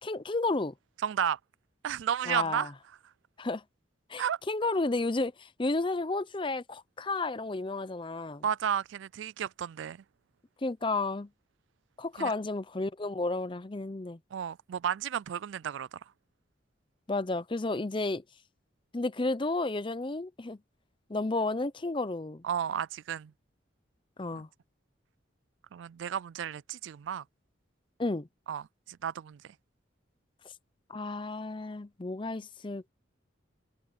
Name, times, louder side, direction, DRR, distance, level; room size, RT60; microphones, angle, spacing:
voice 1, 0.0-0.7 2.3-2.7 3.4-3.6 4.1-8.4 10.6-11.3 12.0-14.2 17.1-18.2 18.9-20.6 21.1-22.4 24.2-24.5 28.0-28.3 30.9-32.9, left 2 dB, 25° left, 0.6 m, -32 dB
voice 2, 1.0-1.4 1.8-2.7 4.2-4.4 8.4-10.0 12.2-12.3 14.3-16.0 22.4-23.3 24.3-24.4 25.7-27.2 28.5-29.4, right 8 dB, 75° right, 0.3 m, -33 dB
head